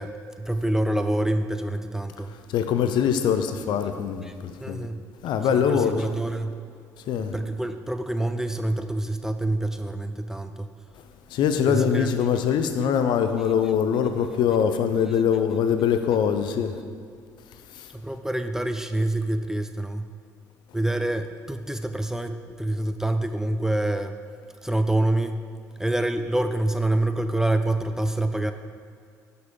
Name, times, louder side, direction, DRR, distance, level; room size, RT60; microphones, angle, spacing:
voice 1, 0.0-2.3 4.2-4.3 4.6-5.0 5.5-6.6 7.2-10.7 11.7-12.1 17.9-20.1 20.7-24.2 24.6-25.5 25.8-28.5, right 1 dB, 5° right, 8 dB, 0.4 m, -26 dB
voice 2, 2.5-4.2 4.7-4.8 5.2-6.0 7.1-7.3 11.3-16.7, left 8 dB, 55° left, 8 dB, 0.5 m, -23 dB
5.8 x 5.6 x 5.3 m, 2.1 s
hypercardioid pair, 55°, 9 cm